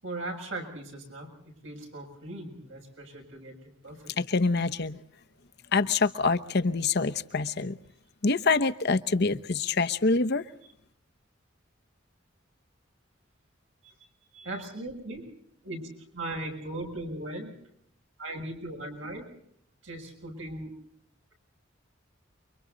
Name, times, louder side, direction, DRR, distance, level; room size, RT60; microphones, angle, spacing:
voice 1, 0.0-4.1 13.8-13.9 14.3-15.3 15.6-17.5 18.2-19.2 19.8-20.7, right 1 dB, 80° right, 1 dB, 6.7 m, -38 dB
voice 2, 4.2-5.0 5.7-7.8 8.2-10.4, left 4 dB, 60° left, 8 dB, 1.0 m, -25 dB
29.5 x 24.0 x 4.0 m, 0.69 s
head